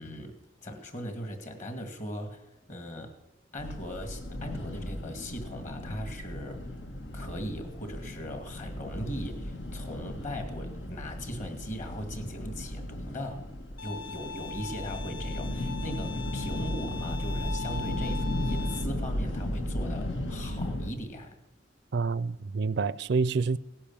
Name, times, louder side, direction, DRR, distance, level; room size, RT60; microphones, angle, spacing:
voice 1, 0.0-2.4 2.7-3.1 3.5-6.6 7.1-13.5 13.8-21.4, equal, 45° left, 2.2 m, -39 dB
sound 1, 3.6-20.9, left 1 dB, 90° left, 1.9 m, -35 dB
Bowed string instrument, 13.8-18.8, left 5 dB, 65° left, 1.3 m, -40 dB
voice 2, 21.9-23.6, right 4 dB, 65° right, 0.4 m, -27 dB
17.5 x 10.0 x 7.2 m
head